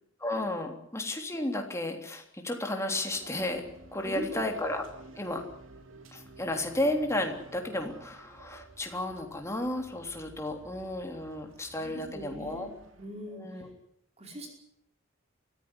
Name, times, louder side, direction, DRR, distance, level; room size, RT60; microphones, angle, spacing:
voice 1, 0.2-3.6 3.9-4.8 5.2-5.4 6.1-12.7 13.3-13.7, left 1 dB, 15° left, 3 dB, 3.4 m, -33 dB
sound 1, 3.1-13.1, right 2 dB, 90° right, 3.5 m, -52 dB
voice 2, 4.0-4.4 11.6-12.7 13.0-13.6 14.2-14.5, equal, 35° right, 2 dB, 5.0 m, -41 dB
24.0 x 15.0 x 9.9 m, 0.73 s
head